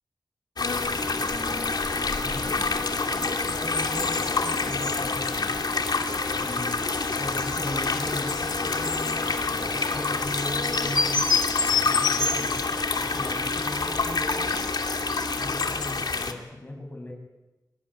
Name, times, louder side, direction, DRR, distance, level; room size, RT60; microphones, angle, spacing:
sound 1, 0.6-16.3, left 4 dB, 75° left, 2.5 m, -27 dB
voice 1, 1.0-2.8 3.2-5.4 6.3-11.3 11.8-14.7 15.4-17.1, left 1 dB, 25° left, 1 dB, 7.7 m, -38 dB
sound 2, 1.0-15.5, equal, 5° right, 2.1 m, -39 dB
24.0 x 19.0 x 9.6 m, 1.1 s
cardioid pair, 50°, 7 cm